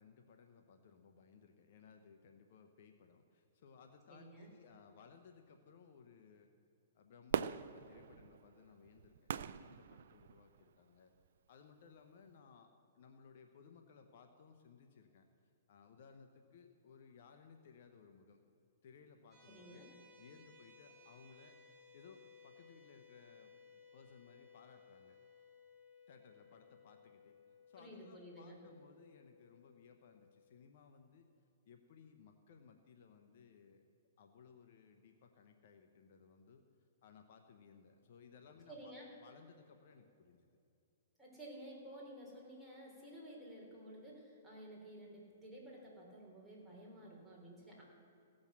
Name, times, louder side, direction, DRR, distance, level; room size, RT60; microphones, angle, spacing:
voice 1, 0.0-6.5 6.9-11.1 11.5-15.3 15.7-18.4 18.8-19.9 20.2-21.6 21.9-23.6 23.9-25.2 26.1-27.4 27.7-31.3 31.7-33.8 34.2-40.6, left 6 dB, 60° left, 6 dB, 0.9 m, -61 dB
voice 2, 4.1-4.5 19.5-19.9 27.8-28.6 38.7-39.1 41.2-47.8, right 1 dB, ahead, -5 dB, 3.7 m, -53 dB
Fireworks, 7.3-10.6 11.2-11.3, right 8 dB, 65° right, 0.3 m, -41 dB
sound 1, 19.3-30.5, left 4 dB, 15° right, 3.7 m, -63 dB
16.5 x 6.4 x 7.3 m, 2.7 s
hypercardioid pair, 140°, 0 cm